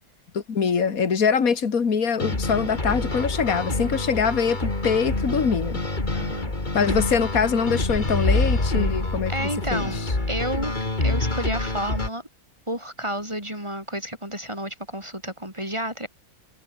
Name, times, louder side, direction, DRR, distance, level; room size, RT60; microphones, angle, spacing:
voice 1, 0.3-5.8 6.7-9.3 9.7-9.9, left 6 dB, 65° left, 2.4 m, -23 dB
sound 1, 2.2-12.1, left 2 dB, 30° left, 3.3 m, -26 dB
voice 2, 6.1-6.5 9.3-10.7 11.0-12.2 12.7-16.1, right 1 dB, 20° right, 5.0 m, -31 dB
omnidirectional pair, 1.6 m